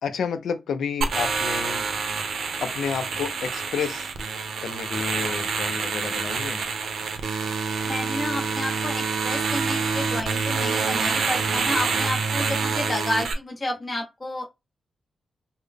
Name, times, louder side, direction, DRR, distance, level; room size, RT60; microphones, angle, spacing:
voice 1, 0.0-1.9 2.6-4.1 4.6-6.6, left 6 dB, 80° left, 0.4 m, -30 dB
sound 1, 1.0-13.3, right 5 dB, 70° right, 0.6 m, -27 dB
voice 2, 7.9-14.5, left 1 dB, 30° left, 0.6 m, -30 dB
3.7 x 2.0 x 3.4 m
wide cardioid pair, 165°, 0 cm